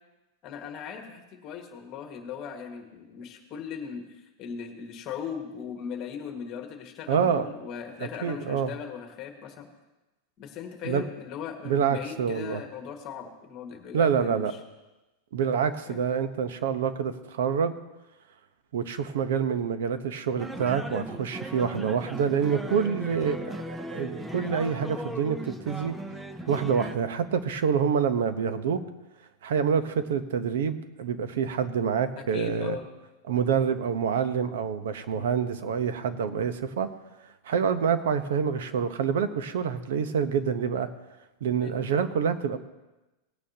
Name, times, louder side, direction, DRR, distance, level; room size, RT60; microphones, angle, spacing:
voice 1, 0.4-9.7 10.4-14.6 15.9-16.0 32.1-32.8 35.1-35.3 41.5-41.7, left 7 dB, 35° left, 4 dB, 1.7 m, -39 dB
voice 2, 7.1-7.5 8.0-8.7 10.8-11.0 11.6-12.6 13.9-14.5 15.3-17.7 18.7-25.9 26.5-28.8 29.4-32.8 33.3-36.9 37.4-40.9 41.4-42.6, right 7 dB, 85° right, 10 dB, 1.0 m, -27 dB
sound 1, 20.4-27.0, equal, 5° right, 0.6 m, -37 dB
18.5 x 9.1 x 2.9 m, 1.0 s
supercardioid pair, 155°, 0 cm